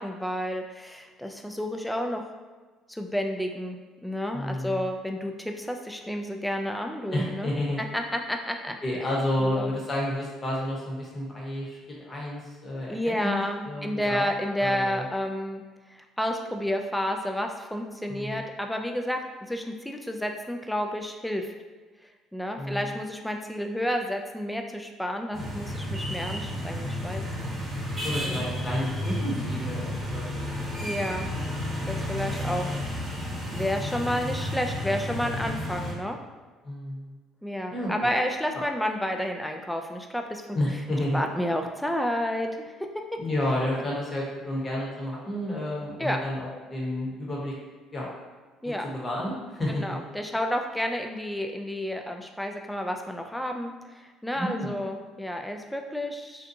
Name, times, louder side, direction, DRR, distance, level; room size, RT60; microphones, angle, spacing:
voice 1, 0.0-2.2 2.9-7.5 7.9-8.8 9.4-9.7 12.9-15.6 15.9-21.5 22.3-27.5 27.9-28.4 30.8-31.3 31.9-32.7 33.1-36.2 37.4-40.4 41.1-42.7 43.1-43.2 46.0-46.2 48.6-48.9 49.7-53.7 54.0-56.5, equal, 5° left, 3 dB, 0.3 m, -31 dB
voice 2, 4.3-4.8 7.1-7.8 8.8-11.8 12.0-14.3 14.6-15.1 18.1-18.5 22.6-22.9 28.0-30.5 36.6-37.1 37.7-38.1 40.5-41.2 43.2-47.5 47.9-48.1 48.6-49.8 54.3-54.7, left 1 dB, 30° left, -4 dB, 0.9 m, -31 dB
sound 1, 25.3-35.9, left 1 dB, 30° right, 0.9 m, -32 dB
2.7 x 2.2 x 2.5 m, 1.3 s
supercardioid pair, 75°, 0 cm